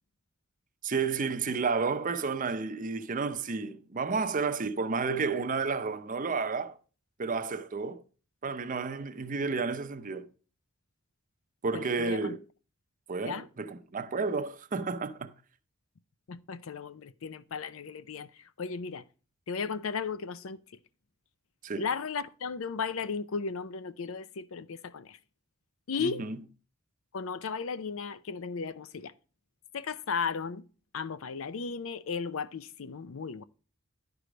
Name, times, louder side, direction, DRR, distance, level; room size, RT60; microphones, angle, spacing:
voice 1, 0.8-6.8 7.2-8.0 8.4-10.3 11.6-12.4 13.1-15.3 21.6-21.9 26.0-26.4, right 4 dB, 40° right, 0.6 m, -31 dB
voice 2, 11.7-12.3 13.2-13.5 16.3-19.0 19.5-20.6 21.8-25.2 25.9-26.2 27.1-29.1 29.7-30.6 30.9-33.4, left 5 dB, 70° left, 0.5 m, -35 dB
11.0 x 4.9 x 5.1 m
head